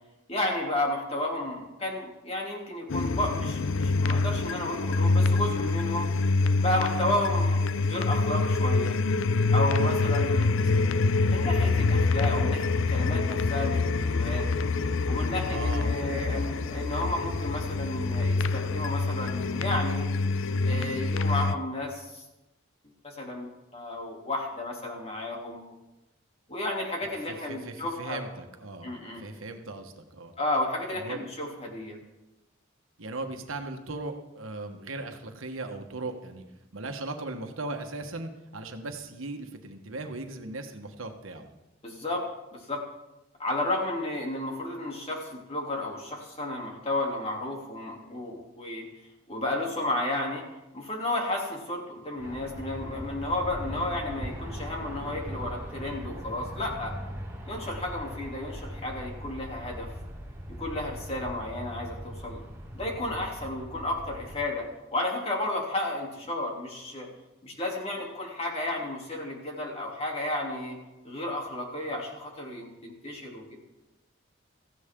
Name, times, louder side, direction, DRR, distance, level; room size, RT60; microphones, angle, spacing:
voice 1, 0.3-6.1 6.6-9.0 9.5-10.6 11.3-14.5 15.1-20.0 20.6-22.2 23.0-25.7 26.5-28.2 28.8-29.2 30.4-32.0 41.8-42.3 42.5-42.8 43.4-48.9 49.3-50.4 50.7-56.9 57.5-59.9 60.6-62.4 62.7-67.1 67.4-70.8 71.0-73.6, left 1 dB, 30° left, -1 dB, 3.0 m, -32 dB
sound 1, 2.9-21.6, left 3 dB, 70° left, 0.5 m, -26 dB
voice 2, 9.8-11.0 15.5-16.6 27.5-28.9 29.2-30.3 30.9-31.3 33.0-36.4 36.7-41.5, right 2 dB, 80° right, 5 dB, 1.4 m, -38 dB
Aircraft, 52.2-64.4, equal, 15° right, 1.9 m, -40 dB
17.0 x 15.0 x 3.8 m, 0.98 s
head